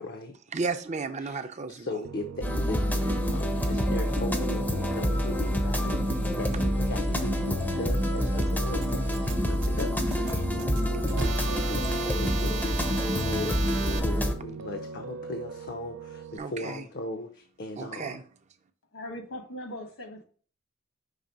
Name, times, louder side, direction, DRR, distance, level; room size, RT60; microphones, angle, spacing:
voice 1, 0.0-0.4 1.2-1.4 1.7-18.2, left 2 dB, 50° left, 0.6 m, -38 dB
voice 2, 0.5-2.1 5.7-5.8 10.6-10.7 16.4-16.9 17.8-18.2, right 4 dB, 35° right, 0.5 m, -34 dB
Piano, 2.0-16.4, right 5 dB, 90° right, 0.4 m, -41 dB
sound 1, 2.4-14.3, equal, 10° left, 0.6 m, -27 dB
sound 2, 8.8-14.0, right 6 dB, 60° right, 0.9 m, -37 dB
voice 3, 18.9-20.2, left 1 dB, 75° left, 1.5 m, -39 dB
5.6 x 3.3 x 5.1 m
head